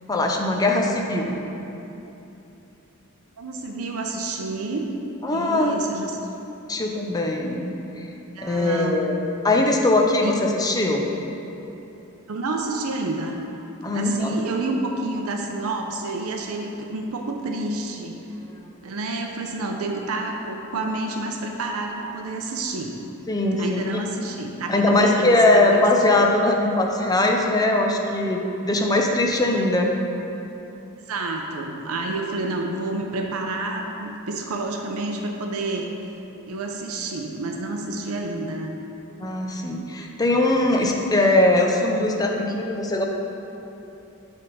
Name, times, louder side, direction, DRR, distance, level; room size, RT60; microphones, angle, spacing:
voice 1, 0.1-1.4 5.2-5.8 6.7-7.7 8.4-11.1 13.8-14.4 23.3-24.0 24.7-29.9 39.2-43.0, left 2 dB, 15° left, 1 dB, 0.5 m, -21 dB
voice 2, 3.4-4.9 5.3-6.2 8.4-9.1 10.2-10.4 12.3-13.4 13.9-18.1 18.8-23.0 23.6-25.3 25.7-25.8 31.1-35.9 36.5-38.7, right 2 dB, 70° right, 2 dB, 0.6 m, -29 dB
8.3 x 3.5 x 5.3 m, 3.0 s
head